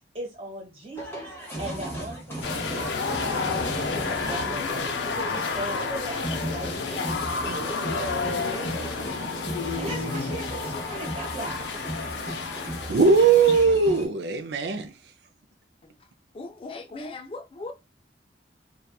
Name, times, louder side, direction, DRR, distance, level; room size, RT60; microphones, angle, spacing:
voice 1, 0.1-1.3 1.6-11.6, right 1 dB, 35° right, 1.1 m, -39 dB
sound 1, 0.9-14.1, equal, 15° left, 0.8 m, -36 dB
sound 2, 2.4-13.6, left 4 dB, 90° left, 0.5 m, -31 dB
voice 2, 12.9-14.9, right 5 dB, 75° right, 0.4 m, -19 dB
voice 3, 16.3-17.7, left 3 dB, 30° left, 0.3 m, -38 dB
2.7 x 2.2 x 2.2 m
head